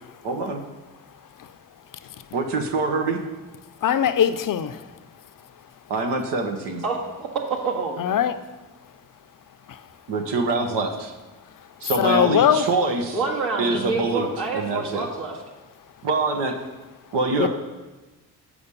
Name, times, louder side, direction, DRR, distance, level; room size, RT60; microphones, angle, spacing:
voice 1, 0.2-0.6 2.3-3.2 5.9-6.8 10.1-11.1 11.8-13.2 13.6-14.3 14.5-15.1 16.0-16.6 17.1-17.5, right 3 dB, 80° right, 4 dB, 1.0 m, -24 dB
voice 2, 3.8-4.8 8.0-8.3 12.0-12.6 17.4-17.5, left 9 dB, 50° left, 11 dB, 0.6 m, -20 dB
voice 3, 6.8-7.3 7.6-8.0 13.1-15.4, right 3 dB, 65° right, -2 dB, 1.9 m, -27 dB
7.0 x 5.0 x 6.8 m, 1.2 s
supercardioid pair, 55°, 41 cm